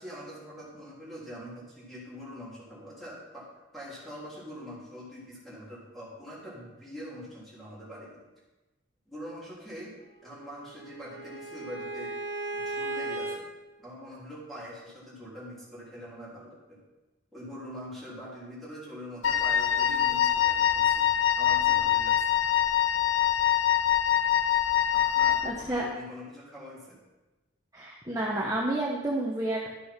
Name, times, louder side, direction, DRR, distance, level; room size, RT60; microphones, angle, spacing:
voice 1, 0.0-3.5 3.7-8.2 9.0-9.9 10.2-12.2 12.5-13.5 13.8-16.8 17.3-21.1 21.4-22.3 24.9-27.0, equal, ahead, -8 dB, 3.3 m, -43 dB
Bowed string instrument, 10.3-13.4, right 2 dB, 75° right, 1.6 m, -36 dB
Wind instrument woodwind instrument, 19.2-25.6, left 10 dB, 85° left, 0.5 m, -24 dB
voice 2, 25.4-25.8 27.7-29.7, right 1 dB, 15° right, -3 dB, 1.0 m, -30 dB
12.0 x 6.2 x 5.9 m, 1.1 s
head